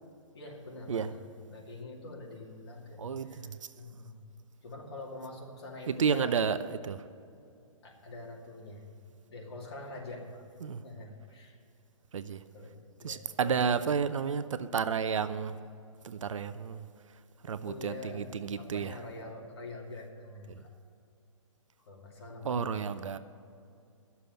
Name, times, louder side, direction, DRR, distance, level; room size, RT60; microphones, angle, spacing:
voice 1, 0.3-1.2 1.5-4.2 4.6-6.4 7.8-8.8 9.2-10.5 10.8-11.6 12.5-13.7 17.6-20.7 21.8-23.1, left 2 dB, 45° left, 2.5 m, -45 dB
voice 2, 3.0-3.7 5.9-7.1 10.6-10.8 12.1-12.4 13.0-15.6 16.0-19.0 20.5-20.6 22.4-23.2, right 6 dB, 65° right, 0.6 m, -32 dB
11.5 x 7.0 x 8.9 m
hypercardioid pair, 175°, 17 cm